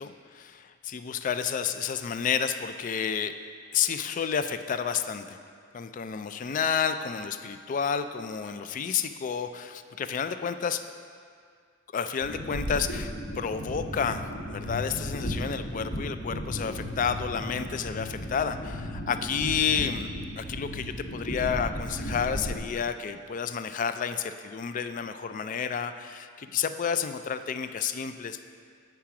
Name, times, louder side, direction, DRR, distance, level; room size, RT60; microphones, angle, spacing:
voice 1, 0.0-3.3 3.7-5.4 5.7-10.8 11.9-20.1 20.4-28.4, left 7 dB, 40° left, 10 dB, 0.3 m, -30 dB
sound 1, 12.2-22.6, equal, 55° left, 1.3 m, -35 dB
8.8 x 4.8 x 5.8 m, 2.1 s
head